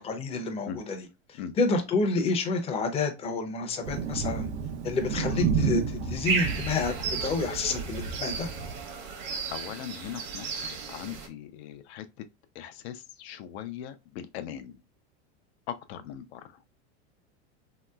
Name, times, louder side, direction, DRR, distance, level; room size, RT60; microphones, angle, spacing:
voice 1, 0.0-4.5 4.8-6.9 7.2-8.5, left 3 dB, 20° left, 0.5 m, -29 dB
Thunder, 3.8-8.8, right 6 dB, 80° right, 0.7 m, -31 dB
sound 1, 6.2-11.3, right 5 dB, 55° right, 1.0 m, -34 dB
voice 2, 9.0-12.3 12.5-14.8 15.7-16.6, left 10 dB, 70° left, 0.5 m, -40 dB
3.0 x 2.8 x 2.2 m
supercardioid pair, 130°, 33 cm